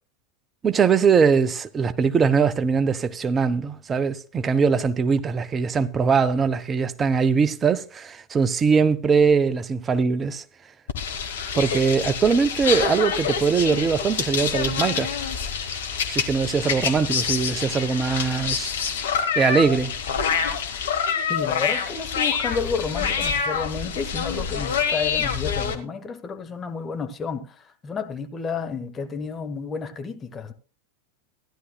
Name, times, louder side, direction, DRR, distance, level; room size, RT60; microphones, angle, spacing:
voice 1, 0.6-10.4 11.6-15.2 16.1-18.7 19.4-19.9, right 5 dB, 20° right, 0.6 m, -21 dB
sound 1, 10.9-25.7, left 6 dB, 60° left, 1.4 m, -26 dB
voice 2, 21.3-30.5, left 5 dB, 20° left, 1.1 m, -31 dB
15.5 x 11.0 x 2.3 m
figure-of-eight pair, 90°, 0 cm